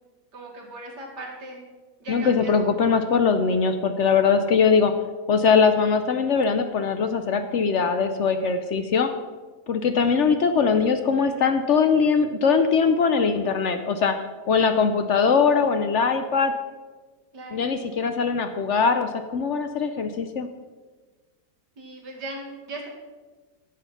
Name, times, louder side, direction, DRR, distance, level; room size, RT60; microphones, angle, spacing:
voice 1, 0.3-1.6 2.0-2.7 10.0-10.3 17.3-17.6 21.8-22.9, right 2 dB, 70° right, -1 dB, 2.8 m, -38 dB
voice 2, 2.1-4.9 5.3-9.1 9.7-14.1 14.5-16.5 17.5-20.5, left 5 dB, 65° left, 8 dB, 0.7 m, -21 dB
11.5 x 7.7 x 5.5 m, 1.3 s
omnidirectional pair, 1.9 m